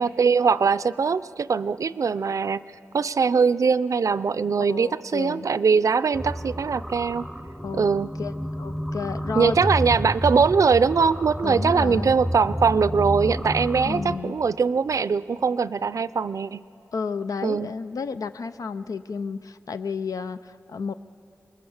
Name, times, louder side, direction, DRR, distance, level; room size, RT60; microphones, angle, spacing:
voice 1, 0.0-2.6 2.9-7.3 7.7-8.1 9.3-16.6 17.4-17.7, right 5 dB, 70° right, 16 dB, 0.5 m, -22 dB
voice 2, 4.7-5.5 7.6-7.8 8.2-9.6 11.4-12.2 13.8-14.4 16.9-20.9, left 5 dB, 80° left, 11 dB, 0.5 m, -32 dB
sound 1, 6.1-14.2, equal, ahead, 0.7 m, -30 dB
26.0 x 21.5 x 7.1 m, 2.7 s
wide cardioid pair, 115°, 6 cm